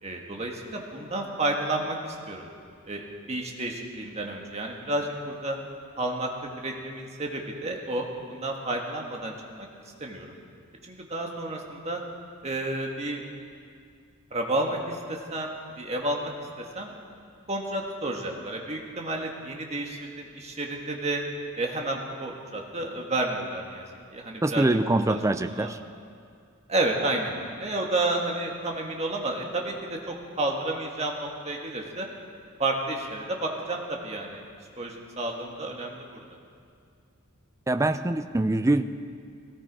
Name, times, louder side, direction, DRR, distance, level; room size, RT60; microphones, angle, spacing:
voice 1, 0.0-2.5 2.9-3.0 3.3-5.6 6.0-6.3 6.6-9.3 9.6-9.7 10.0-10.4 10.8-12.0 12.4-13.2 14.3-16.3 16.6-16.9 17.5-21.2 21.6-23.9 24.1-24.6 25.1-25.7 26.7-32.1 32.6-34.4 34.8-36.4, right 2 dB, 30° right, 1 dB, 1.7 m, -31 dB
voice 2, 24.4-25.8 37.7-38.8, right 2 dB, 15° right, 10 dB, 0.4 m, -24 dB
17.5 x 16.0 x 4.8 m, 2.3 s
head